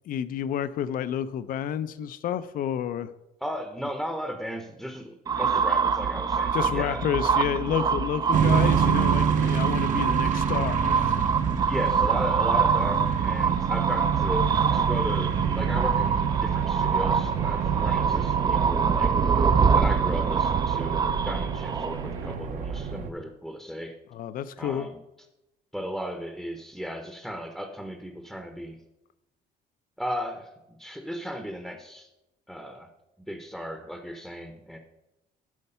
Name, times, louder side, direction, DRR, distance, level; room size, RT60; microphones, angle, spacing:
voice 1, 0.1-3.1 6.5-11.2 24.1-24.9, left 10 dB, 60° left, 14 dB, 0.5 m, -30 dB
voice 2, 3.4-7.0 11.7-19.1 19.7-24.0 24.6-25.0 25.7-28.8 30.0-32.1 32.5-32.9 33.3-34.8, equal, ahead, 5 dB, 0.7 m, -35 dB
sound 1, 5.3-22.3, right 6 dB, 25° right, 0.4 m, -25 dB
sound 2, 8.3-23.1, right 7 dB, 50° right, 0.8 m, -27 dB
11.0 x 4.5 x 5.6 m, 0.94 s
cardioid pair, 140°, 16 cm